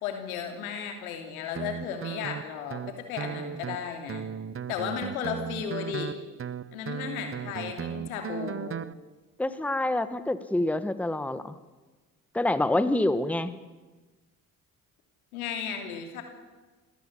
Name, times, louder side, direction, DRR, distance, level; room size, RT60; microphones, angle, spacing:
voice 1, 0.0-4.3 4.7-6.2 6.7-8.8 15.3-16.2, left 7 dB, 80° left, 4 dB, 3.0 m, -34 dB
Guitar, 1.6-8.9, right 8 dB, 30° right, 0.8 m, -36 dB
voice 2, 9.4-11.5 12.3-13.5, left 1 dB, 5° left, 12 dB, 1.3 m, -26 dB
28.5 x 13.0 x 8.6 m, 1.3 s
figure-of-eight pair, 45°, 42 cm